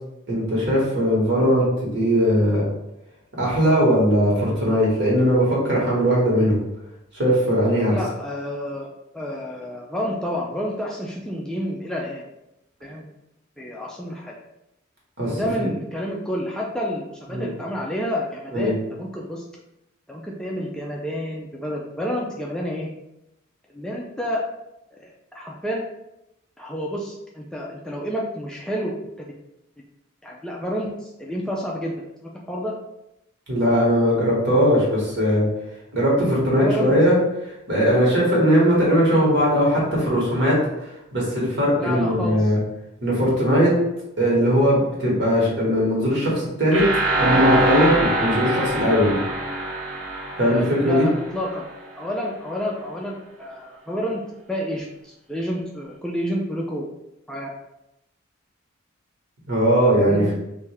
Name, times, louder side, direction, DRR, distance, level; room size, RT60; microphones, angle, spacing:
voice 1, 0.3-2.6 3.4-6.6 7.1-8.0 15.2-15.6 17.3-17.5 18.5-18.7 33.5-35.5 35.9-37.2 37.4-42.6 43.0-43.7 44.2-46.9 47.2-49.1 50.4-51.1 59.5-60.3, equal, 55° right, -5 dB, 1.5 m, -19 dB
voice 2, 7.9-8.9 9.1-12.2 12.8-13.0 13.6-14.3 15.3-19.4 20.1-22.9 23.7-24.4 25.0-25.8 26.6-28.9 30.2-31.9 32.2-32.7 36.6-36.9 41.8-42.5 50.4-51.6 52.0-54.2 54.5-56.9 57.3-57.5 60.0-60.3, equal, 5° left, -3 dB, 0.3 m, -29 dB
sound 1, 46.7-51.6, right 1 dB, 80° right, 0.9 m, -24 dB
3.4 x 2.6 x 3.3 m, 0.87 s
head